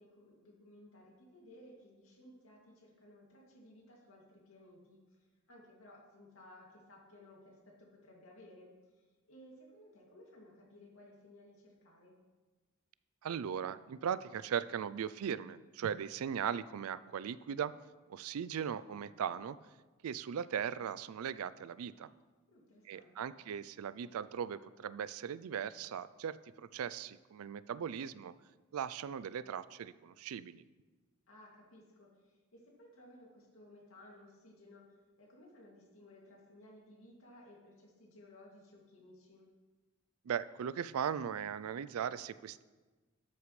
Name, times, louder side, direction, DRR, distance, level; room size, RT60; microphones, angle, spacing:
voice 1, 0.0-12.2 22.5-23.3 31.3-34.9 35.2-39.5, left 1 dB, 70° left, -2 dB, 2.4 m, -58 dB
voice 2, 13.2-17.7 18.1-19.6 20.0-22.1 22.9-28.3 28.7-30.6 40.3-42.6, right 8 dB, 85° right, 16 dB, 0.4 m, -38 dB
12.5 x 8.2 x 3.2 m, 1.3 s
head